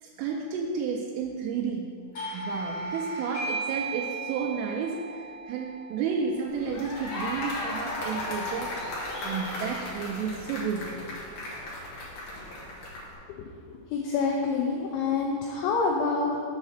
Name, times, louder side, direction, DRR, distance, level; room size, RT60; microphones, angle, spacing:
voice 1, 0.0-1.9 2.3-8.7 9.2-11.3, right 5 dB, 85° right, 0 dB, 3.0 m, -32 dB
Doorbell, 2.1-7.4, right 3 dB, 55° left, 1.7 m, -36 dB
sound 1, 6.5-13.1, left 1 dB, 75° left, 1.8 m, -35 dB
voice 2, 13.3-16.4, left 4 dB, 90° left, 0 dB, 2.6 m, -27 dB
7.3 x 4.2 x 6.4 m, 2.3 s
omnidirectional pair, 6.0 m